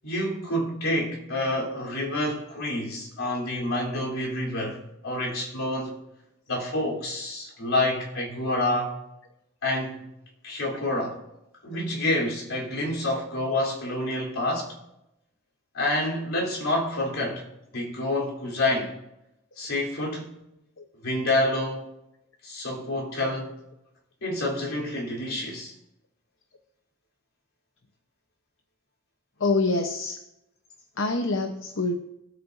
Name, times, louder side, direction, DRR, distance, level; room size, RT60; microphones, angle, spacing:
voice 1, 0.0-6.0 6.5-9.0 9.6-10.1 10.4-11.2 11.6-14.8 15.7-17.4 17.7-18.9 19.6-20.4 21.0-21.9 22.4-23.6 24.2-25.7, left 1 dB, 90° left, 3.5 m, -28 dB
voice 2, 29.4-30.2 31.0-32.0, left 3 dB, 70° left, 0.9 m, -26 dB
24.5 x 8.6 x 2.6 m
head